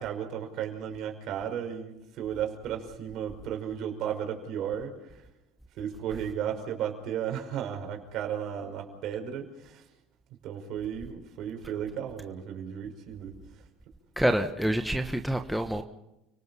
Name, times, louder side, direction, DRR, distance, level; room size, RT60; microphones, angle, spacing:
voice 1, 0.0-5.2 5.8-9.8 10.4-13.6, right 9 dB, 60° right, 5.5 m, -34 dB
voice 2, 14.2-15.8, right 1 dB, ahead, 1.3 m, -27 dB
30.0 x 18.5 x 5.7 m
supercardioid pair, 105°, 0 cm